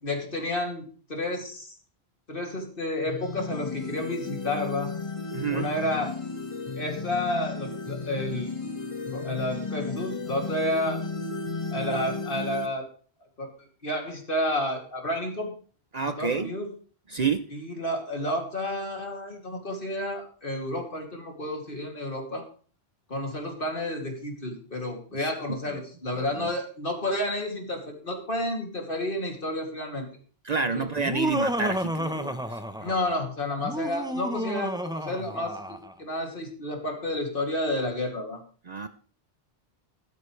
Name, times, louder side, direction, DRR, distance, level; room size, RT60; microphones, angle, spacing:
voice 1, 0.0-1.7 2.3-4.9 5.5-6.2 6.8-8.5 9.1-11.0 11.7-12.9 13.4-15.5 16.2-16.7 17.5-22.5 23.1-30.1 30.7-30.9 32.8-38.4, left 1 dB, 55° left, 2 dB, 2.9 m, -31 dB
sound 1, 3.1-12.7, left 3 dB, 30° left, 1.6 m, -34 dB
voice 2, 5.3-5.7 15.9-16.5 17.1-17.5 25.1-25.8 26.1-26.5 30.4-32.6 38.7-38.9, right 5 dB, 45° right, 11 dB, 0.7 m, -29 dB
Laughter, 31.0-33.1 33.6-35.9, equal, 5° right, 0.7 m, -31 dB
14.5 x 12.5 x 3.3 m, 0.42 s
omnidirectional pair, 1.1 m